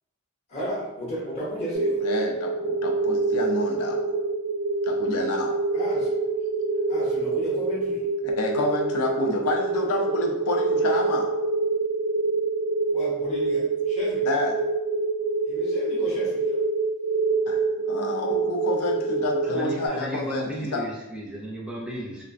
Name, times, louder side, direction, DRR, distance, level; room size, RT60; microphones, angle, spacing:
voice 1, 0.5-2.0 5.7-6.2 6.9-8.0 12.9-14.3 15.4-16.6, equal, 30° left, -7 dB, 0.7 m, -33 dB
sound 1, 1.7-19.9, right 3 dB, 75° right, 0.4 m, -26 dB
voice 2, 2.0-4.1 4.8-5.6 8.2-11.4 14.3-14.6 17.5-17.6 17.9-20.8, left 2 dB, 90° left, 1 dB, 0.5 m, -29 dB
voice 3, 19.4-22.2, equal, 5° right, -4 dB, 0.4 m, -34 dB
2.5 x 2.1 x 2.5 m, 1.0 s
head